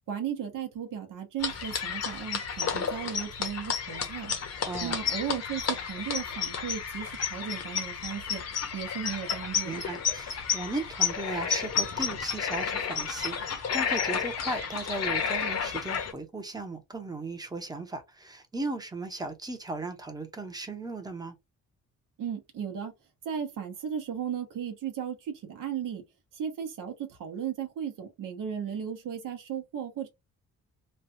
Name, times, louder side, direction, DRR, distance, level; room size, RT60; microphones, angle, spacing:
voice 1, 0.1-4.3 4.8-8.4 8.7-9.8 22.2-22.9 23.2-26.0 26.3-30.1, right 8 dB, 80° right, 1.0 m, -35 dB
sound 1, 1.4-16.1, left 7 dB, 50° left, 0.9 m, -31 dB
voice 2, 4.7-5.0 9.6-21.3, right 2 dB, 10° right, 0.8 m, -36 dB
3.2 x 2.3 x 2.6 m
cardioid pair, 135°, 32 cm